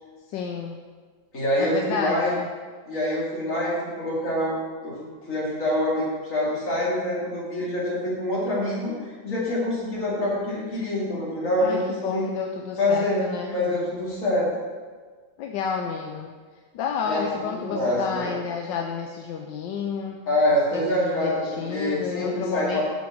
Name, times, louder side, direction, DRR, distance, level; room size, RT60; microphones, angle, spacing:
voice 1, 0.3-0.8 1.6-2.5 11.6-13.5 15.4-16.3 16.7-20.2 20.7-22.8, left 6 dB, 75° left, 3 dB, 1.2 m, -30 dB
voice 2, 1.3-2.3 2.9-4.5 4.8-12.3 12.8-13.2 13.5-14.5 17.0-17.3 17.6-18.3 20.3-22.8, left 1 dB, 45° left, -6 dB, 2.8 m, -25 dB
7.4 x 5.9 x 6.3 m, 1.5 s
omnidirectional pair, 2.1 m